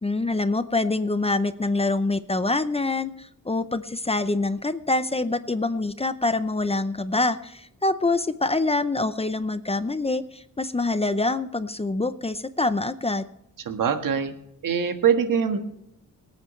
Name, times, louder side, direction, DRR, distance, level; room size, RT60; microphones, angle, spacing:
voice 1, 0.0-13.3, left 2 dB, 20° left, 12 dB, 0.6 m, -25 dB
voice 2, 13.6-14.3 14.6-15.6, right 7 dB, 80° right, 6 dB, 1.6 m, -23 dB
24.5 x 9.1 x 3.2 m, 0.77 s
wide cardioid pair, 120°, 32 cm